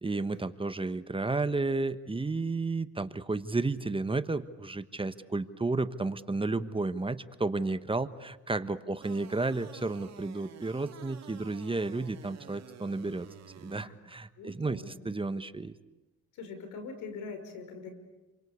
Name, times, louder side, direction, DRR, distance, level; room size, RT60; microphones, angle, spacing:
voice 1, 0.0-13.3 13.6-15.7, right 3 dB, 15° right, 11 dB, 1.2 m, -32 dB
sound 1, 9.0-13.8, right 9 dB, 60° right, 2.3 m, -51 dB
voice 2, 14.4-14.9 16.3-17.9, left 4 dB, 90° left, 7 dB, 5.8 m, -43 dB
30.0 x 24.0 x 8.3 m, 1.1 s
cardioid pair, 90°, 30 cm